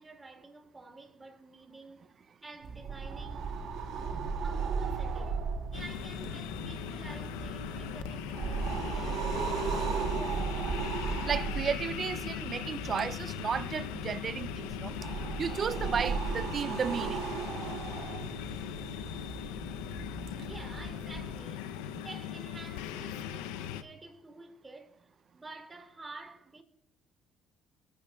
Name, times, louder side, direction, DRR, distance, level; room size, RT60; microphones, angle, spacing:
voice 1, 0.0-3.7 4.4-10.9 20.4-26.6, right 2 dB, 20° right, 2.1 m, -50 dB
sound 1, 2.6-21.4, right 5 dB, 65° right, 1.5 m, -36 dB
sound 2, 5.7-23.8, left 10 dB, 85° left, 0.5 m, -39 dB
voice 2, 11.3-15.0 15.4-17.3 21.9-22.0, right 6 dB, 45° right, 0.3 m, -34 dB
20.0 x 8.7 x 2.2 m
supercardioid pair, 75°, 0 cm